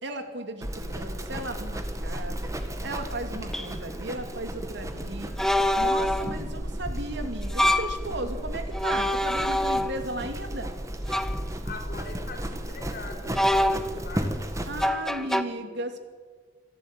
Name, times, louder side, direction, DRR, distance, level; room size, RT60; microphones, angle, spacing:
voice 1, 0.0-5.3 5.8-10.7 14.7-16.0, right 2 dB, 65° right, 6 dB, 2.4 m, -35 dB
Livestock farm animals working animals, 0.6-14.9, equal, 15° right, 1.7 m, -34 dB
sound 1, 2.6-2.7 3.5-3.7 5.4-6.4 7.4-8.0 8.7-10.2 11.1-11.4 13.3-14.1 14.8-15.4, left 1 dB, ahead, 0.8 m, -25 dB
voice 2, 11.6-14.4 15.2-15.7, left 3 dB, 50° left, 1 dB, 4.5 m, -42 dB
26.0 x 12.0 x 9.0 m, 1.5 s
head